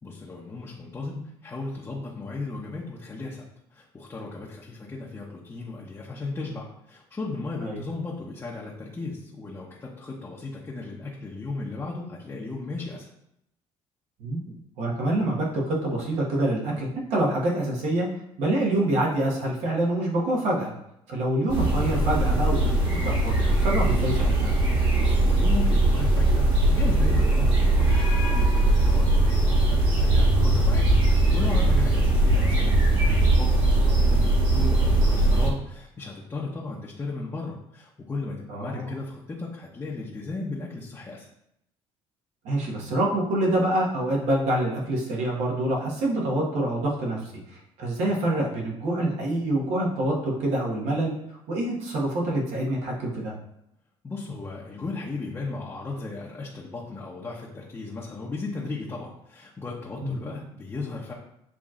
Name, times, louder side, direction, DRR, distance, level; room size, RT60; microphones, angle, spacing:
voice 1, 0.0-3.4 3.7-13.1 24.9-41.3 54.0-61.1, left 3 dB, 25° left, -4 dB, 0.9 m, -36 dB
voice 2, 14.8-18.1 18.4-20.7 21.1-22.6 22.9-24.5 31.7-31.8 38.5-38.9 42.4-51.1 51.5-53.3 60.0-60.2, right 1 dB, 75° right, -3 dB, 1.5 m, -26 dB
sound 1, 21.5-35.5, right 2 dB, 45° right, 1.6 m, -20 dB
7.2 x 2.9 x 2.5 m, 0.79 s
cardioid pair, 100°, 12 cm